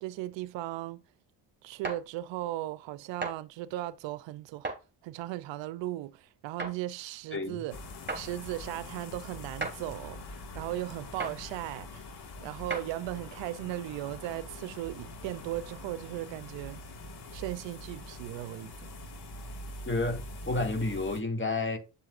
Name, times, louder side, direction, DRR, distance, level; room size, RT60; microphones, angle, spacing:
voice 1, 0.0-1.0 1.6-4.7 5.0-7.8 8.1-12.1 12.4-16.8 17.3-18.9, right 15 dB, 85° right, 0.6 m, -37 dB
sound 1, 1.8-2.0 3.2-3.4 4.6-4.8 6.6-6.8 8.1-8.3 9.6-9.8 11.2-11.4 12.7-12.9, right 3 dB, 25° right, 3.3 m, -34 dB
voice 2, 7.3-7.6 19.9-21.8, left 2 dB, 25° left, 2.3 m, -30 dB
sound 2, 7.7-21.2, left 2 dB, 65° left, 2.0 m, -44 dB
8.7 x 7.5 x 2.5 m
supercardioid pair, 55°, 43 cm